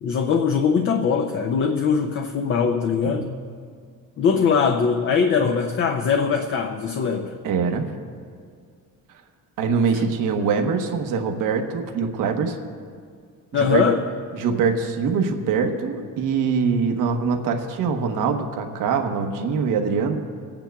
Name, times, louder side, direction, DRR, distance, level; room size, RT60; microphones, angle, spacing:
voice 1, 0.0-3.3 4.2-7.3 9.9-10.0 13.5-14.0, left 6 dB, 40° left, 5 dB, 0.5 m, -21 dB
voice 2, 7.4-7.9 9.6-12.6 13.5-13.8 14.3-20.2, right 5 dB, 70° right, 4 dB, 1.1 m, -23 dB
26.5 x 8.9 x 2.3 m, 2.1 s
cardioid pair, 160°, 33 cm